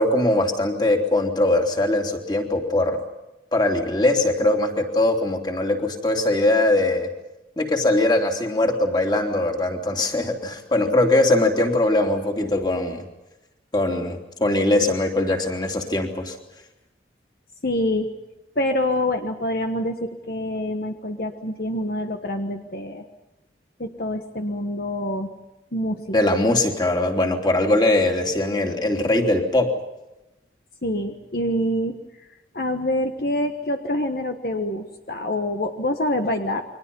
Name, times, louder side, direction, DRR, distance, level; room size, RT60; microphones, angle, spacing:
voice 1, 0.0-3.0 3.5-7.1 7.6-13.0 13.7-16.3 26.1-29.7, left 2 dB, 25° left, 2 dB, 3.2 m, -21 dB
voice 2, 17.6-18.1 18.5-23.1 23.8-25.3 25.7-26.2 30.8-32.0 32.5-36.6, left 1 dB, 60° left, 5 dB, 1.5 m, -26 dB
29.5 x 23.5 x 5.5 m, 0.98 s
head